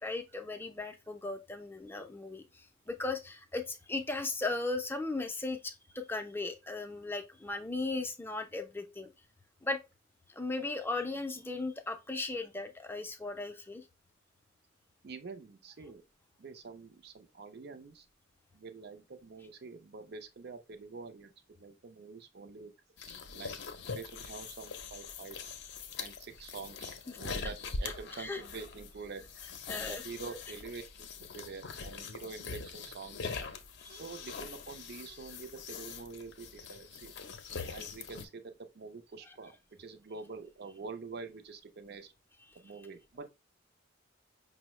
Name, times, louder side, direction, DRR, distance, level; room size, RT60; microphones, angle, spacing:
voice 1, 0.0-9.1 9.6-9.8 10.3-13.9 27.1-27.2 28.2-28.4 29.7-30.0 33.8-34.0 39.3-39.4 42.5-42.6, left 3 dB, 10° left, 0.4 m, -37 dB
voice 2, 15.0-16.0 16.4-18.1 18.5-21.3 21.6-22.7 23.3-23.6 23.9-25.5 26.0-26.9 27.2-33.3 33.9-37.1 37.6-42.1 42.5-43.3, right 4 dB, 55° right, 0.5 m, -46 dB
sound 1, 23.0-38.3, left 4 dB, 60° left, 0.5 m, -43 dB
5.3 x 2.0 x 2.9 m
head